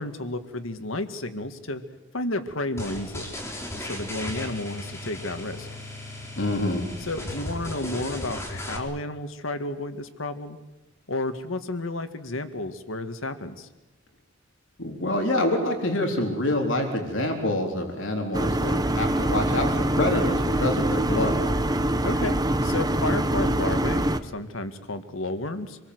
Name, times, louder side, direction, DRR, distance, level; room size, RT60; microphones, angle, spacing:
voice 1, 0.0-1.8 2.1-3.4 3.8-5.8 7.0-10.6 11.1-13.7 22.0-25.8, left 2 dB, 90° left, 9 dB, 2.0 m, -32 dB
sound 1, 2.8-8.8, left 1 dB, 15° left, 4.1 m, -36 dB
voice 2, 6.4-6.8 14.8-21.4, left 1 dB, 70° left, 3 dB, 3.9 m, -26 dB
sound 2, 18.3-24.2, right 1 dB, 20° right, 1.2 m, -24 dB
27.0 x 22.0 x 8.0 m, 1.1 s
head